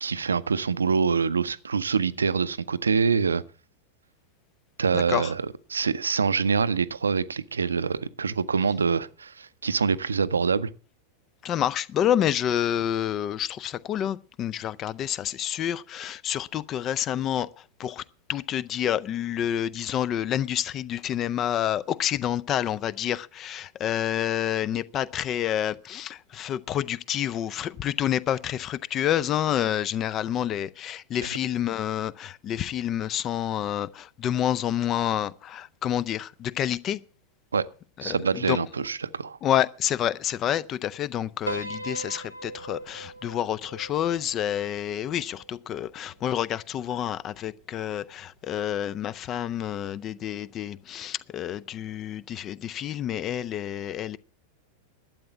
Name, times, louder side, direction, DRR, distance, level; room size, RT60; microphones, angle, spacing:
voice 1, 0.0-3.4 4.8-10.7 37.5-37.6 38.0-39.4, right 5 dB, 75° right, 0.6 m, -25 dB
voice 2, 4.9-5.3 11.4-17.5 17.8-18.0 18.3-37.0 38.0-38.6 39.4-54.2, left 10 dB, 30° left, 0.5 m, -28 dB
Piano, 41.5-45.9, right 1 dB, 90° right, 1.0 m, -39 dB
12.0 x 8.7 x 7.1 m
figure-of-eight pair, 90°, 0 cm